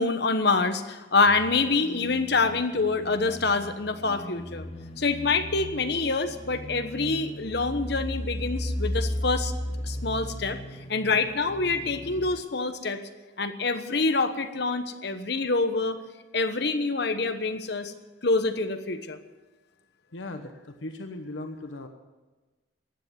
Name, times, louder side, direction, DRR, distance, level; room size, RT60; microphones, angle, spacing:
voice 1, 0.0-4.7 5.0-9.5 9.8-10.6 10.9-13.0 13.4-16.0 16.3-17.9 18.2-19.2, left 3 dB, 55° left, 9 dB, 1.2 m, -26 dB
sound 1, 1.2-12.3, equal, 30° left, 1.0 m, -36 dB
voice 2, 20.1-21.9, left 2 dB, 80° left, 6 dB, 1.1 m, -38 dB
15.0 x 10.0 x 9.3 m, 1.2 s
head